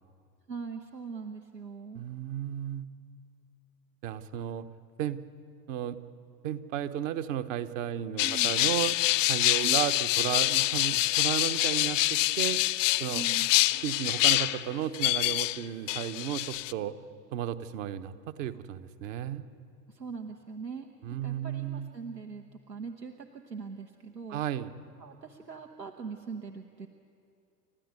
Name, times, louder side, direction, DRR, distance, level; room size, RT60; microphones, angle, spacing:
voice 1, 0.5-2.0 8.2-8.5 9.6-9.8 13.1-13.5 19.9-20.9 21.2-24.4 25.0-26.9, right 5 dB, 85° right, 4 dB, 1.2 m, -41 dB
voice 2, 1.9-2.9 4.0-4.7 5.0-5.2 5.7-6.0 6.4-9.0 9.3-12.6 13.0-13.2 13.8-16.9 17.3-19.4 21.0-21.9 24.3-24.7, right 11 dB, 50° right, 9 dB, 1.2 m, -34 dB
sound 1, 8.2-15.6 15.9-16.7, left 18 dB, 50° left, 0.7 m, -26 dB
29.5 x 13.5 x 9.5 m, 2.6 s
figure-of-eight pair, 85°, 48 cm